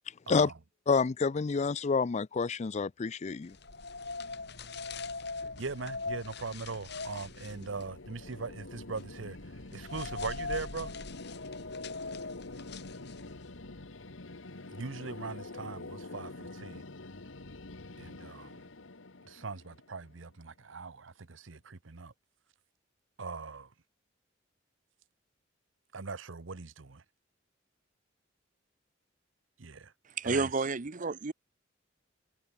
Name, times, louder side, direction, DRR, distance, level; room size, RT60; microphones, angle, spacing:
voice 1, 0.9-3.6, left 4 dB, 35° left, 0.4 m, -28 dB
sound 1, 3.5-13.5, left 3 dB, 60° left, 4.2 m, -42 dB
sound 2, 5.4-20.4, left 2 dB, 90° left, 1.6 m, -47 dB
voice 2, 5.6-9.4 9.7-10.9 14.7-16.8 18.0-18.5 19.3-22.1 23.2-23.7 25.9-27.0 29.6-29.9 30.2-30.5, right 4 dB, 80° right, 1.0 m, -40 dB
voice 3, 30.2-31.3, right 4 dB, 45° right, 0.8 m, -30 dB
head